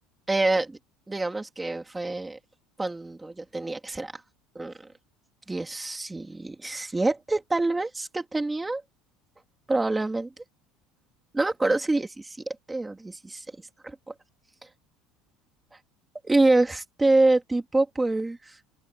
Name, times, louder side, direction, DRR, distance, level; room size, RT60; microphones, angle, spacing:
voice 1, 0.3-0.8 1.1-2.4 2.8-4.1 4.6-4.7 5.5-8.8 9.7-10.3 11.3-13.4 13.8-14.1 16.2-18.6, right 2 dB, 5° right, 2.2 m, -26 dB
open air
cardioid pair, 180°, 0 cm